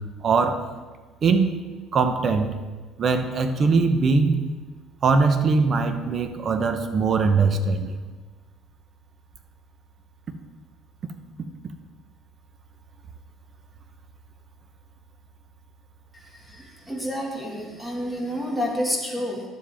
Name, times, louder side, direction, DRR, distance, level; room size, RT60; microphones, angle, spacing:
voice 1, 0.2-0.6 1.2-1.5 1.9-2.5 3.0-4.4 5.0-7.9, right 4 dB, 40° right, 8 dB, 0.9 m, -21 dB
voice 2, 16.1-19.4, equal, ahead, -1 dB, 1.9 m, -29 dB
11.5 x 7.4 x 3.5 m, 1.4 s
cardioid pair, 115°, 0 cm